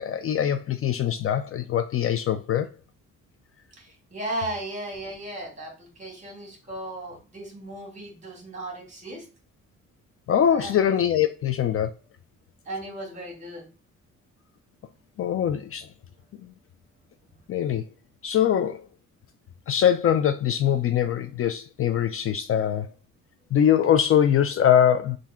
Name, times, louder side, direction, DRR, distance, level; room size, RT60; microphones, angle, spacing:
voice 1, 0.0-2.7 10.3-11.9 15.2-15.9 17.5-17.8 18.2-18.9 19.7-22.9 23.5-25.2, left 9 dB, 50° left, 0.4 m, -22 dB
voice 2, 3.8-9.2 10.5-11.0 12.7-13.7, right 1 dB, 25° right, 2.0 m, -36 dB
3.6 x 2.6 x 4.2 m
cardioid pair, 90°, 30 cm